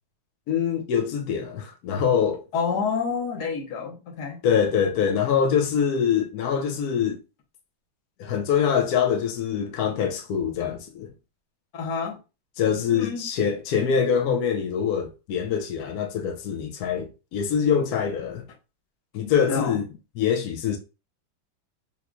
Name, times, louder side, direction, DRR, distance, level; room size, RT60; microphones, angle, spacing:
voice 1, 0.5-2.4 4.4-7.2 8.2-11.1 12.6-18.4 19.1-19.8 20.2-20.8, left 7 dB, 75° left, 0.8 m, -24 dB
voice 2, 2.5-4.4 11.7-12.2 12.9-13.3 19.5-19.8, left 5 dB, 60° left, 1.3 m, -28 dB
3.7 x 3.0 x 2.3 m
omnidirectional pair, 2.2 m